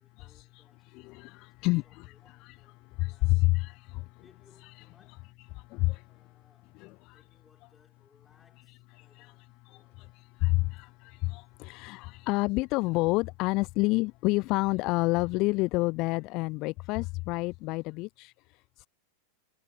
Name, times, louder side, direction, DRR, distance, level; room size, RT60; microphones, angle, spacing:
voice 1, 0.0-1.0 1.6-3.6 4.2-5.3 6.1-6.8 7.1-10.3, left 5 dB, 15° left, 6.0 m, -66 dB
voice 2, 0.5-2.1 2.4-2.6 3.0-4.1 4.6-4.7 5.5-6.1 6.8-7.2 9.0-9.3 9.7-18.9, left 23 dB, 40° left, 0.4 m, -29 dB
figure-of-eight pair, 90°, 0 cm